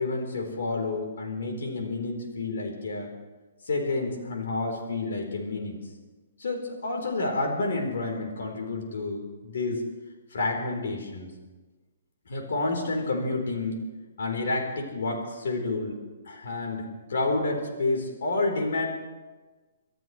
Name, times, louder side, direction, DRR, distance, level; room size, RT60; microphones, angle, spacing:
voice 1, 0.0-3.1 3.6-5.8 6.4-9.8 10.3-11.3 12.3-13.8 14.2-16.0 16.2-18.9, left 3 dB, 80° left, 2 dB, 4.1 m, -29 dB
28.5 x 13.5 x 3.3 m, 1.2 s
hypercardioid pair, 150°, 0 cm